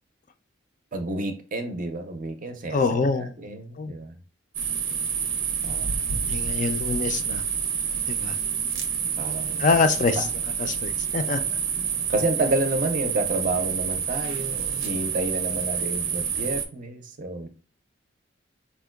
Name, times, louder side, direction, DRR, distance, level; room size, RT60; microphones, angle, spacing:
voice 1, 0.9-4.2 5.6-6.3 9.2-9.7 12.1-17.5, right 2 dB, 40° right, 0.5 m, -30 dB
voice 2, 2.7-3.4 3.8-3.9 6.3-7.4 8.1-8.3 9.6-10.3 10.6-11.4, left 4 dB, 40° left, 0.3 m, -25 dB
sound 1, 4.5-16.6, right 7 dB, 85° right, 0.6 m, -28 dB
4.4 x 2.2 x 2.2 m
head